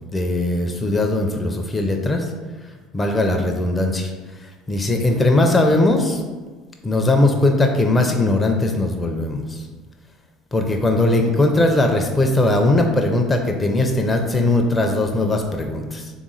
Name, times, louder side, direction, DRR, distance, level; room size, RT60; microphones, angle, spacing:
voice 1, 0.1-2.3 2.9-4.1 4.7-6.2 6.8-9.6 10.5-16.1, left 2 dB, 20° left, 3 dB, 0.5 m, -19 dB
3.5 x 3.0 x 3.8 m, 1.4 s
hypercardioid pair, 65°, 0 cm